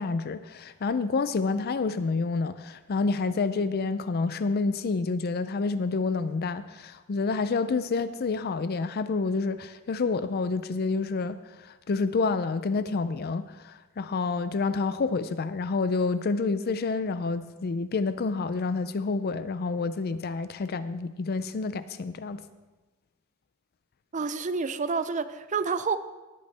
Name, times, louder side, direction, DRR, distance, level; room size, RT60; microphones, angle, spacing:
voice 1, 0.0-22.4, left 4 dB, 50° left, 0.4 m, -28 dB
voice 2, 24.1-26.0, right 5 dB, 35° right, 0.5 m, -28 dB
18.5 x 8.5 x 3.4 m
head